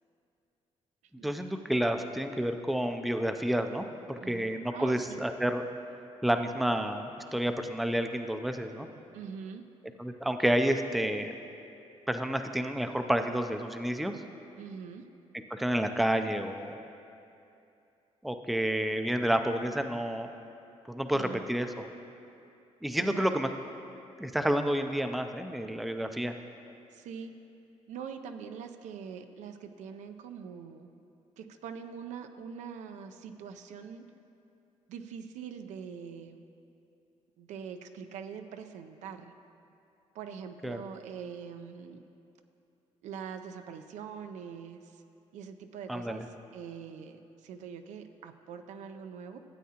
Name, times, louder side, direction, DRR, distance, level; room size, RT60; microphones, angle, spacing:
voice 1, 1.2-5.6 6.2-8.9 10.0-11.3 12.1-14.2 15.5-16.8 18.2-20.3 20.9-21.9 22.8-23.5 24.2-26.3 40.6-40.8 45.9-46.3, right 1 dB, ahead, 7 dB, 0.4 m, -30 dB
voice 2, 4.2-5.2 9.1-9.6 14.6-15.0 21.1-21.5 22.9-23.3 26.9-27.3 27.9-30.9 31.4-34.0 34.9-36.4 37.4-39.3 40.1-42.0 43.0-45.0 45.3-49.4, right 7 dB, 90° right, 7 dB, 0.5 m, -43 dB
13.0 x 8.3 x 2.9 m, 2.7 s
cardioid pair, 125°, 12 cm